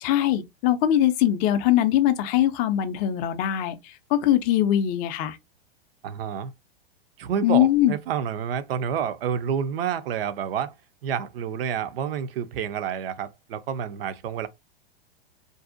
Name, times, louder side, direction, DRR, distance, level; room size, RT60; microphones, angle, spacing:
voice 1, 0.0-5.4 7.4-7.9, left 12 dB, 30° left, 0.4 m, -22 dB
voice 2, 6.0-6.5 7.2-10.7 11.0-14.5, right 8 dB, 70° right, 0.5 m, -29 dB
2.6 x 2.0 x 2.5 m
hypercardioid pair, 110°, 31 cm